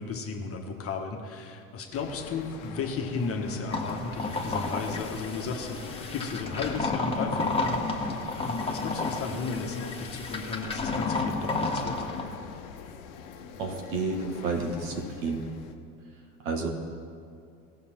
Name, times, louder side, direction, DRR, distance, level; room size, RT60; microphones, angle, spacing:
voice 1, 0.0-12.1, left 4 dB, 30° left, 3 dB, 1.5 m, -35 dB
sound 1, 1.9-15.7, left 6 dB, 50° left, 1.2 m, -43 dB
sound 2, 3.7-12.2, left 3 dB, 15° left, 1.5 m, -31 dB
voice 2, 13.6-15.4 16.5-16.7, right 3 dB, 60° right, 3 dB, 1.8 m, -30 dB
17.5 x 6.6 x 4.5 m, 2.4 s
figure-of-eight pair, 75°, 44 cm